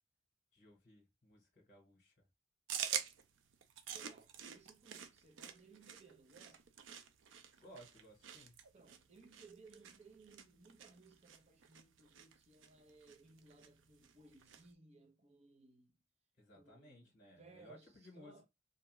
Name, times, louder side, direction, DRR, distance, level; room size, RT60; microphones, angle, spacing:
voice 1, 0.5-2.3 7.5-8.6 16.4-18.5, equal, 45° left, 1.0 m, -60 dB
sound 1, 2.7-14.7, right 8 dB, 85° right, 0.5 m, -48 dB
voice 2, 3.9-6.6 8.7-15.9 16.6-17.1 17.4-17.9 18.1-18.5, right 3 dB, 35° right, 0.7 m, -62 dB
2.7 x 2.3 x 3.0 m
head